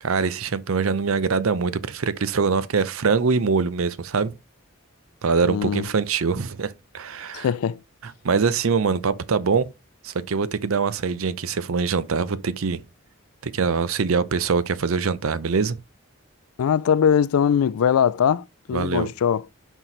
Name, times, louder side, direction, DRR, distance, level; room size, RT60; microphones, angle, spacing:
voice 1, 0.0-4.3 5.2-7.5 8.2-9.7 10.0-12.8 13.4-15.8 18.7-19.1, right 5 dB, 70° right, 0.6 m, -23 dB
voice 2, 5.4-5.9 7.3-7.8 16.6-19.5, left 8 dB, 80° left, 0.3 m, -21 dB
5.9 x 4.5 x 3.9 m
head